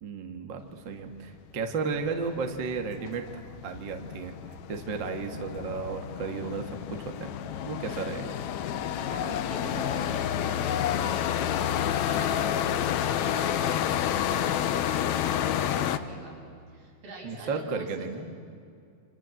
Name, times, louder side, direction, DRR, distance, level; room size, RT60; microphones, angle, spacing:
voice 1, 0.0-3.3 3.6-7.3 7.6-8.4 17.2-18.3, right 4 dB, 45° right, 5 dB, 1.6 m, -34 dB
sound 1, 1.7-1.8 2.1-16.0, left 10 dB, 70° left, 1.8 m, -29 dB
voice 2, 9.0-16.4 16.7-17.9, right 1 dB, 65° right, -3 dB, 8.8 m, -44 dB
29.0 x 26.0 x 7.7 m, 2.4 s
omnidirectional pair, 4.3 m